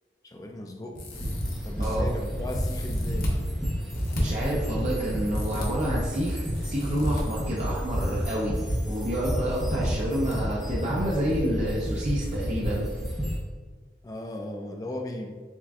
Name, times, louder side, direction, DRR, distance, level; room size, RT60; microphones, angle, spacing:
voice 1, 0.2-1.1 1.6-3.5 5.5-5.8 14.0-15.3, left 1 dB, 20° left, 3 dB, 0.3 m, -37 dB
sound 1, 0.9-1.9 2.5-3.4 3.9-4.2 5.3-5.7 6.5-7.2 8.3-8.8 9.0-9.1 10.3-10.4 10.8-10.9, equal, 55° left, 0.8 m, -34 dB
sound 2, 1.1-13.4, equal, 5° right, 0.8 m, -30 dB
voice 2, 1.8-2.1 4.2-8.5 8.8-12.9, equal, 40° right, -5 dB, 0.5 m, -29 dB
7.2 x 2.5 x 2.4 m, 1.5 s
head